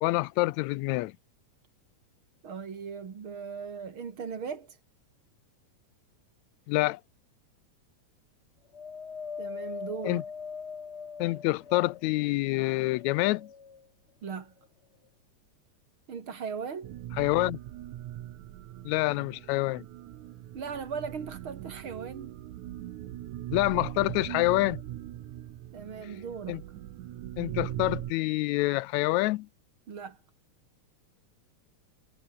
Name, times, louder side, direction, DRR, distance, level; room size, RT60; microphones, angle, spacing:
voice 1, 0.0-1.1 6.7-7.0 10.0-10.2 11.2-13.5 17.2-17.6 18.9-19.8 23.5-24.8 26.5-26.6 27.4-29.5, left 20 dB, 80° left, 1.8 m, -27 dB
voice 2, 2.4-4.8 9.4-10.2 14.2-14.5 16.1-16.9 20.5-22.4 25.7-26.6 29.9-30.2, right 6 dB, 45° right, 2.8 m, -38 dB
Wind, 8.7-12.2 12.8-13.9 14.6-14.7, left 5 dB, 40° left, 0.9 m, -41 dB
sound 1, 16.8-28.1, right 13 dB, 80° right, 2.6 m, -40 dB
omnidirectional pair, 3.4 m